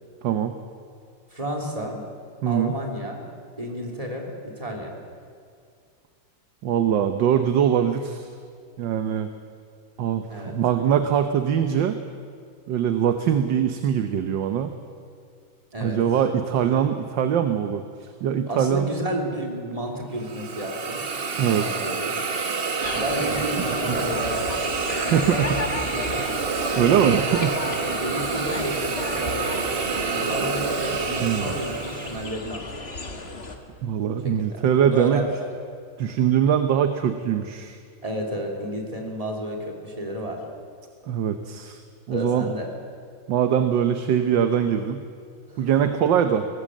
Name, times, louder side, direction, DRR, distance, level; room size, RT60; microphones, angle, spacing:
voice 1, 0.2-0.5 2.4-2.7 6.6-8.3 8.8-9.3 10.0-12.0 12.7-14.7 15.8-17.8 18.2-18.9 21.4-21.6 23.6-24.0 24.9-25.5 26.8-27.6 31.2-31.5 33.8-35.2 36.0-37.8 41.1-41.8 42.1-42.5 43.3-45.0 45.6-46.4, right 9 dB, 75° right, 8 dB, 1.6 m, -22 dB
voice 2, 1.3-2.0 2.4-3.3 3.6-5.0 10.3-10.5 15.7-16.0 18.5-21.0 21.3-22.1 22.9-24.5 25.0-25.4 25.8-26.4 27.7-32.9 34.2-35.5 36.0-36.2 38.0-40.4 42.1-42.7 45.5-45.7, equal, 20° right, 0 dB, 3.3 m, -31 dB
Hiss, 20.2-32.3, right 4 dB, 35° right, 1.1 m, -28 dB
sound 1, 22.8-33.6, left 3 dB, 35° left, 1.8 m, -34 dB
23.0 x 18.0 x 7.6 m, 2.3 s
omnidirectional pair, 2.1 m